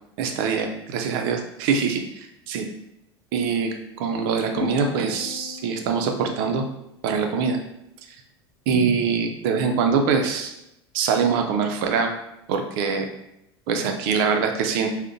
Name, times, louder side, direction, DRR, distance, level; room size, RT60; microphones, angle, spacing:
voice 1, 0.2-2.7 3.3-6.6 7.0-7.6 8.7-10.5 10.9-12.1 12.5-13.1 13.7-14.9, right 5 dB, 60° right, 4 dB, 0.5 m, -23 dB
sound 1, 4.6-7.0, left 3 dB, 70° left, 0.8 m, -36 dB
3.5 x 2.1 x 2.5 m, 0.83 s
hypercardioid pair, 80°, 14 cm